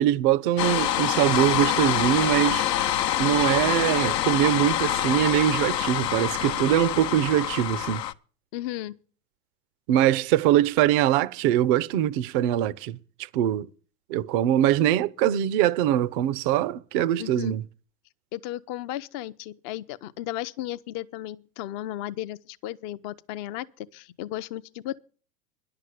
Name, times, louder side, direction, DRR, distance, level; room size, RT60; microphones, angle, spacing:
voice 1, 0.0-2.7 3.2-8.0 9.9-13.0 13.3-13.7 14.1-17.6, right 12 dB, 35° right, 0.5 m, -22 dB
sound 1, 0.6-8.1, left 11 dB, 80° left, 0.8 m, -26 dB
voice 2, 8.5-8.9 17.2-17.5 18.3-25.0, left 14 dB, 25° left, 0.5 m, -35 dB
10.5 x 6.7 x 9.2 m
hypercardioid pair, 105°, 49 cm